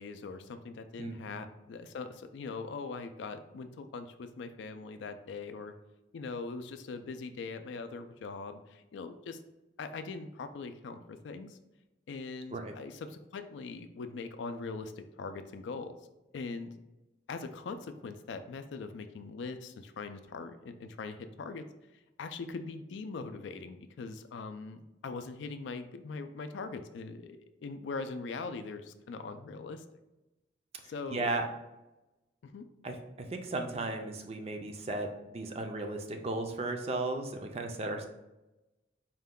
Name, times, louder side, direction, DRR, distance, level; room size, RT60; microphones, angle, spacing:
voice 1, 0.0-5.7 6.1-9.4 9.8-11.6 12.1-15.9 16.3-16.7 17.3-21.6 22.2-29.8 30.8-31.4 32.4-32.7, left 4 dB, 80° left, 9 dB, 0.3 m, -41 dB
voice 2, 1.0-1.4 12.5-12.7 30.8-31.4 32.8-38.1, right 2 dB, 35° right, 4 dB, 0.4 m, -36 dB
4.3 x 2.2 x 3.6 m, 1.0 s
head